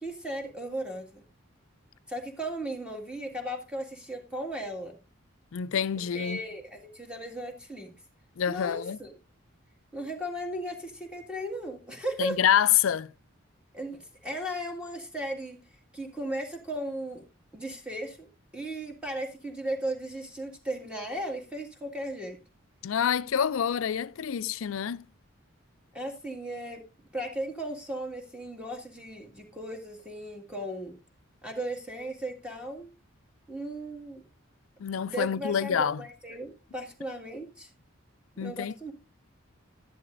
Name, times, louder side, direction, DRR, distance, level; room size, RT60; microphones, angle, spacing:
voice 1, 0.0-1.2 2.1-4.9 6.1-7.9 8.5-9.1 9.9-12.4 13.7-15.6 15.9-17.2 17.5-18.3 18.5-22.4 25.9-26.9 27.1-30.9 31.4-32.9 33.5-34.2 35.0-37.7 38.4-38.9, right 1 dB, 5° right, 1.8 m, -36 dB
voice 2, 5.5-6.4 8.4-9.0 12.2-13.1 22.8-25.1 34.8-36.0 38.4-38.9, left 8 dB, 75° left, 0.4 m, -27 dB
12.0 x 11.0 x 2.6 m
head